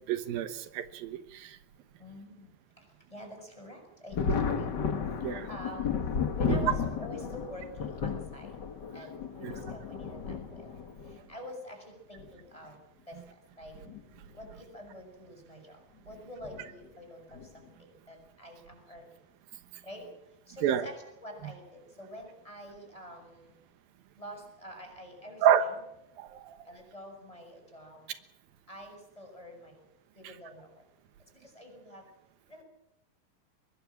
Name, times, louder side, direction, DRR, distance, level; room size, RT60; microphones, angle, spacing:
voice 1, 0.1-1.5 5.2-5.5 6.5-6.7 9.4-9.5 20.6-20.8 25.4-25.6 26.2-26.3, right 10 dB, 85° right, 10 dB, 3.1 m, -27 dB
voice 2, 2.0-2.8 3.1-4.7 5.5-5.9 6.3-8.6 8.9-9.1 9.4-10.8 11.0-12.8 13.1-13.2 13.6-13.8 14.3-15.8 16.0-19.1 19.8-20.1 20.5-23.5 24.2-25.8 26.6-28.1 28.7-29.8 30.1-30.8 31.3-32.0 32.5-32.6, equal, 10° left, 3 dB, 6.5 m, -47 dB
Thunder, 4.1-11.2 12.2-12.3 13.7-14.0 14.4-14.5 16.4-16.6 17.3-17.7, left 6 dB, 45° left, 1.4 m, -33 dB
24.0 x 21.5 x 7.4 m, 0.85 s
omnidirectional pair, 4.1 m